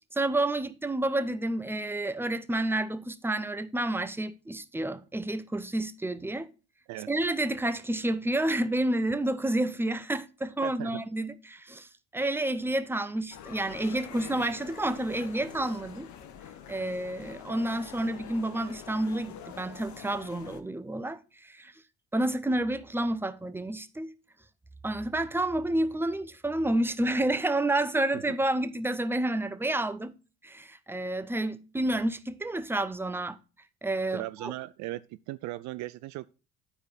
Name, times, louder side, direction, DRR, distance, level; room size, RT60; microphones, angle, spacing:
voice 1, 0.1-6.5 7.1-16.1 16.7-21.7 22.1-24.1 24.8-30.1 30.4-33.4 33.8-34.5, right 1 dB, 5° right, 0.9 m, -30 dB
voice 2, 10.6-11.0 28.1-28.2 34.1-36.3, right 17 dB, 55° right, 0.5 m, -37 dB
sound 1, 13.3-20.6, left 9 dB, 55° left, 1.1 m, -45 dB
11.5 x 4.7 x 4.2 m
hypercardioid pair, 65°, 34 cm